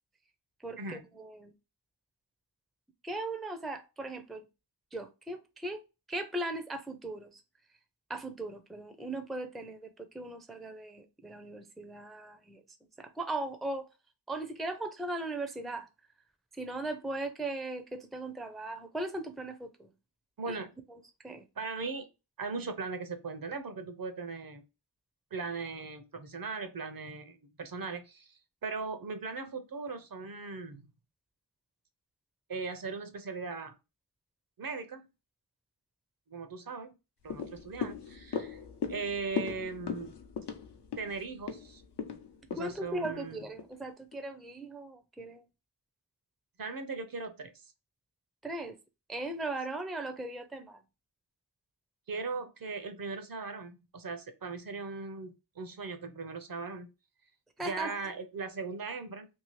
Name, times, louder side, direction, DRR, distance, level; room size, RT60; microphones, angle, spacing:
voice 1, 0.6-1.5 3.0-4.5 4.9-5.8 6.1-7.4 8.1-12.6 13.0-13.9 14.3-15.9 16.5-19.9 20.5-20.6 21.2-21.4 42.6-45.4 48.4-48.8 49.1-50.8 57.6-57.9, right 2 dB, ahead, 0.4 m, -38 dB
voice 2, 20.4-20.7 21.6-22.1 22.4-24.6 25.3-30.9 32.5-33.7 34.6-35.0 36.3-37.0 37.2-38.6 38.9-40.1 41.0-41.8 42.5-43.4 46.6-47.5 52.1-56.9 57.6-59.3, right 4 dB, 55° right, 0.6 m, -39 dB
sound 1, 37.2-43.7 44.1-44.2, left 6 dB, 75° left, 0.6 m, -39 dB
2.7 x 2.7 x 3.1 m
wide cardioid pair, 80°, 41 cm